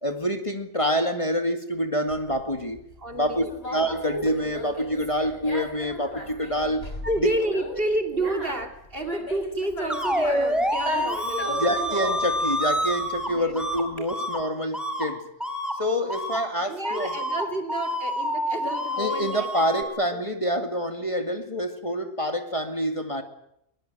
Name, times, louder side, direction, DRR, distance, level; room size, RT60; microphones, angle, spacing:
voice 1, 0.0-2.8 3.1-6.9 7.2-7.3 11.5-15.3 15.7-17.2 19.0-23.2, equal, 25° left, 6 dB, 2.1 m, -27 dB
Conversation, 2.1-14.0, left 1 dB, 55° left, 6.2 m, -36 dB
voice 2, 3.0-3.5 7.0-11.8 13.3-13.6 14.0-14.1 16.7-20.2, right 1 dB, 45° right, 5 dB, 2.9 m, -30 dB
sound 1, 9.9-13.3 13.6-13.8 14.1-14.4 14.7-15.0 15.4-15.7 16.1-16.4 16.8-19.8, equal, ahead, 3.3 m, -27 dB
21.5 x 21.0 x 9.1 m, 0.78 s
omnidirectional pair, 1.3 m